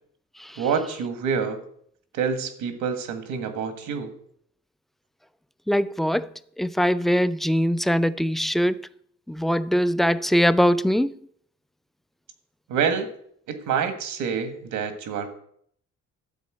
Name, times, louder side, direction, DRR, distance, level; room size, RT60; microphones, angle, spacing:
voice 1, 0.6-1.6 2.1-4.1 12.7-13.1 13.5-15.3, right 6 dB, 90° right, 1.6 m, -27 dB
voice 2, 5.7-6.3 6.6-8.8 9.3-11.2, equal, ahead, 0.3 m, -22 dB
12.5 x 4.2 x 7.9 m
cardioid pair, 90°, 30 cm